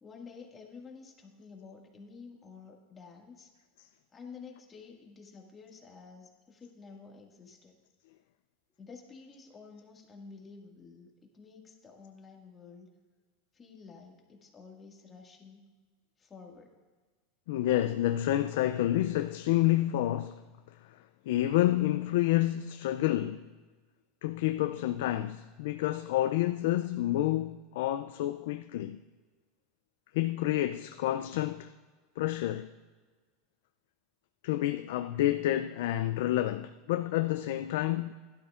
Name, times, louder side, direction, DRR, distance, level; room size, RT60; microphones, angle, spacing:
voice 1, 0.0-3.5 4.1-7.8 8.8-12.9 13.5-15.7 16.2-16.8, left 5 dB, 20° left, 1.9 m, -51 dB
voice 2, 17.5-20.4 20.8-23.5 24.2-29.0 30.1-31.7 32.2-32.7 34.4-38.1, left 14 dB, 75° left, 0.4 m, -29 dB
16.5 x 12.0 x 2.5 m
supercardioid pair, 135°, 0 cm